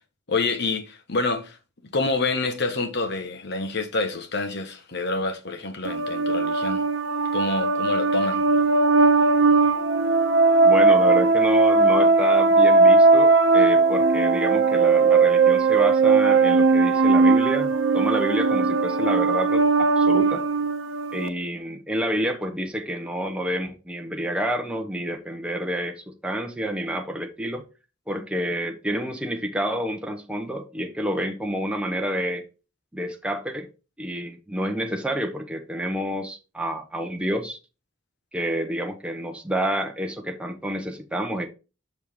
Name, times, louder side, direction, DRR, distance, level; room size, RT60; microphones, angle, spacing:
voice 1, 0.3-1.6 1.9-6.9 7.3-8.5, left 3 dB, 60° left, 1.1 m, -27 dB
sound 1, 5.8-21.3, right 3 dB, 70° right, 0.7 m, -18 dB
voice 2, 10.6-20.4 21.1-27.7 28.1-32.4 32.9-33.7 34.0-37.6 38.3-41.5, equal, 5° right, 0.8 m, -29 dB
6.3 x 5.4 x 3.5 m
head